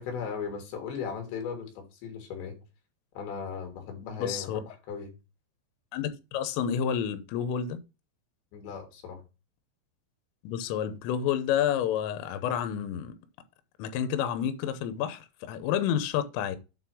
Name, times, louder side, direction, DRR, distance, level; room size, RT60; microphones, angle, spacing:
voice 1, 0.0-2.6 3.2-5.1 8.5-9.2, left 6 dB, 65° left, 3.9 m, -37 dB
voice 2, 4.0-4.6 5.9-7.8 10.4-13.2 13.8-16.6, left 9 dB, 85° left, 3.4 m, -29 dB
8.7 x 3.9 x 6.1 m
omnidirectional pair, 5.8 m